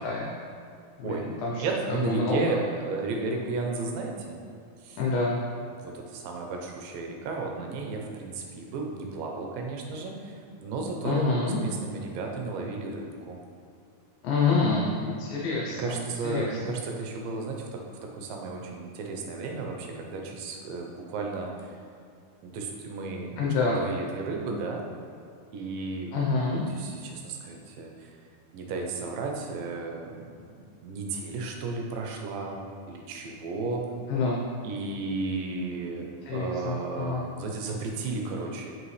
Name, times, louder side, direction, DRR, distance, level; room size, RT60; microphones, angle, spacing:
voice 1, 1.0-2.6 5.0-5.4 11.0-11.6 14.2-16.6 23.4-23.8 26.1-26.6 34.1-34.4 36.3-37.2, left 3 dB, 75° left, -3 dB, 2.3 m, -27 dB
voice 2, 1.6-4.4 4.8-5.0 5.7-13.4 15.8-21.7 22.4-23.4 23.7-24.9 25.5-26.2 26.5-28.1 28.5-30.2 30.5-33.9 34.6-38.8, right 3 dB, 75° right, 1 dB, 2.2 m, -34 dB
7.8 x 5.5 x 3.2 m, 2.3 s
omnidirectional pair, 4.4 m